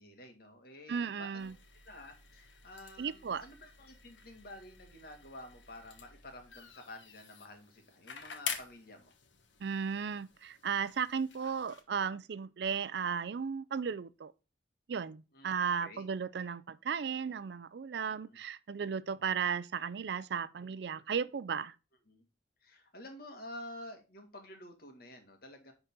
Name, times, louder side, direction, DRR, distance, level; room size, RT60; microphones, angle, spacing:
voice 1, 0.0-1.5 1.9-9.1 15.3-16.1 18.1-18.4 19.2-19.3 22.1-22.2 22.6-25.7, left 1 dB, 55° left, 1.9 m, -50 dB
voice 2, 0.9-1.5 3.0-3.4 9.6-14.3 14.9-21.7, right 6 dB, 65° right, 0.4 m, -35 dB
sound 1, 1.4-11.8, left 7 dB, 90° left, 1.3 m, -48 dB
10.0 x 4.0 x 3.7 m
head